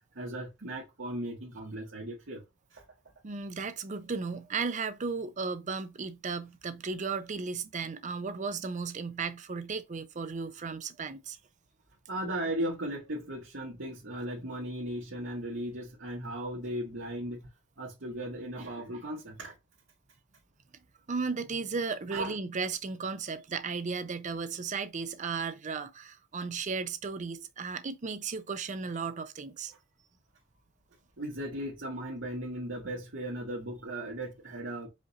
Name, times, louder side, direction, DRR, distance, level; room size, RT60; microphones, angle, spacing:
voice 1, 0.1-2.4 2.7-2.8 12.1-17.5 17.8-19.5 22.1-22.4 31.2-34.9, right 1 dB, 70° right, 1.4 m, -37 dB
voice 2, 3.2-11.4 21.1-29.7, right 4 dB, 40° right, 0.5 m, -35 dB
5.0 x 2.5 x 4.0 m
head